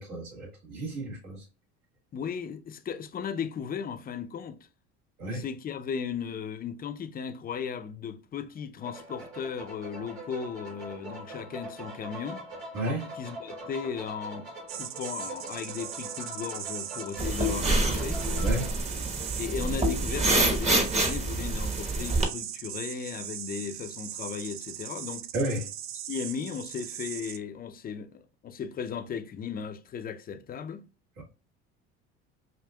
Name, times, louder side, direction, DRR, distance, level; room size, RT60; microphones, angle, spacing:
voice 1, 0.0-1.4 5.2-5.4 12.7-13.1 18.4-18.7 25.3-25.7 31.2-31.3, right 1 dB, 65° right, 1.7 m, -32 dB
voice 2, 2.1-4.6 5.3-12.4 13.1-14.5 14.7-18.2 19.4-25.3 25.9-30.9, left 7 dB, 30° left, 0.5 m, -36 dB
sound 1, 8.8-18.7, right 1 dB, 85° right, 2.0 m, -43 dB
sound 2, 14.7-27.4, right 11 dB, 45° right, 0.4 m, -39 dB
sound 3, 17.2-22.2, right 2 dB, 20° right, 1.0 m, -27 dB
5.0 x 2.5 x 2.3 m
supercardioid pair, 85°, 31 cm